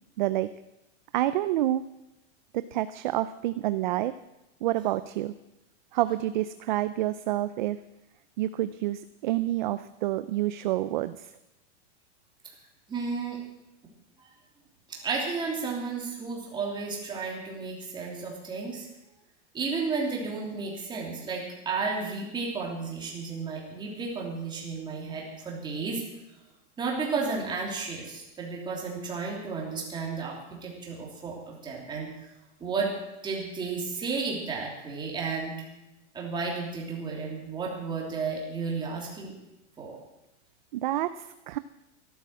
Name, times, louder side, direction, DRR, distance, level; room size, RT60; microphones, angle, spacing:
voice 1, 0.2-0.5 1.1-1.8 2.5-4.1 4.6-5.3 5.9-7.8 8.4-11.3 40.7-41.6, right 14 dB, 40° right, 13 dB, 0.5 m, -28 dB
voice 2, 12.9-13.4 14.2-14.3 14.9-18.9 19.5-26.0 26.8-32.1 32.6-32.9 33.2-35.6 36.1-39.3 39.8-40.0, right 4 dB, 10° right, -2 dB, 3.1 m, -33 dB
14.5 x 12.0 x 7.5 m, 0.94 s
supercardioid pair, 165°, 36 cm